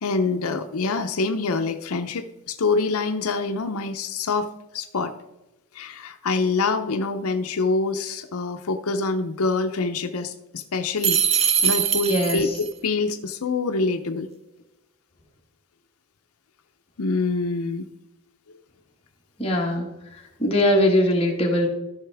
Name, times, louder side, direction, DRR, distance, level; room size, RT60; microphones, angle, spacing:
voice 1, 0.0-5.1 5.7-12.5 12.8-14.3 17.0-17.9 18.5-18.6, left 3 dB, 80° left, 6 dB, 0.6 m, -26 dB
sound 1, 11.0-12.7, right 8 dB, 25° right, 0.4 m, -22 dB
voice 2, 12.1-12.4 19.4-19.9 20.4-21.7, left 1 dB, 25° left, -1 dB, 1.6 m, -20 dB
13.5 x 5.7 x 3.5 m, 0.99 s
head